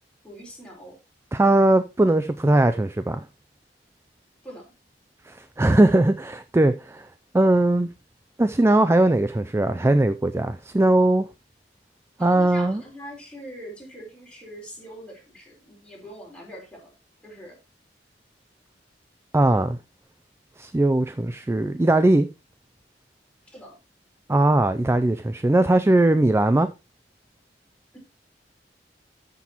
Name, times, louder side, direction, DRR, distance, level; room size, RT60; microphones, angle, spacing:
voice 1, 0.2-1.0 4.4-4.7 12.2-16.9 17.2-17.6 23.5-23.8 27.9-28.0, equal, 5° left, 4.1 m, -42 dB
voice 2, 1.3-3.2 5.3-7.1 7.3-7.9 8.4-11.3 12.2-12.8 19.3-19.8 20.6-22.3 24.3-26.7, right 2 dB, 15° right, 0.4 m, -19 dB
13.0 x 6.0 x 2.9 m
head